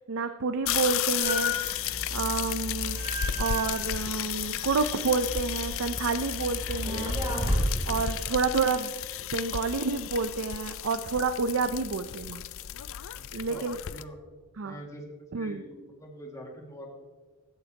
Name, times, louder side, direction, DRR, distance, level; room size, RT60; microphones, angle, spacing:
voice 1, 0.1-3.0 3.4-8.9 9.3-12.4 13.3-13.8 14.6-14.8 15.3-15.6, right 4 dB, 65° right, 10 dB, 0.5 m, -29 dB
sound 1, 0.6-14.0, left 11 dB, 65° left, 0.4 m, -34 dB
sound 2, 1.2-8.0, left 1 dB, 20° right, 2.8 m, -33 dB
voice 2, 13.4-14.2 14.6-17.0, equal, 15° left, 0 dB, 2.0 m, -45 dB
16.0 x 11.5 x 2.9 m, 1.3 s
head